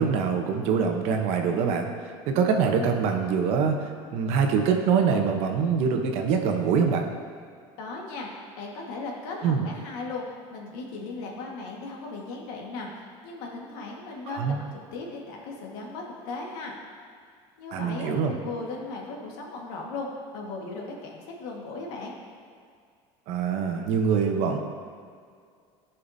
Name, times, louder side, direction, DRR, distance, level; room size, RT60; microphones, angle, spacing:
voice 1, 0.0-7.1 9.4-9.7 14.3-14.6 17.7-18.3 23.3-24.6, right 6 dB, 55° right, 4 dB, 0.9 m, -24 dB
voice 2, 7.8-8.3 8.6-16.7 17.6-22.1, left 3 dB, 80° left, -1 dB, 1.7 m, -37 dB
14.5 x 5.6 x 2.7 m, 2.2 s
cardioid pair, 165°, 13 cm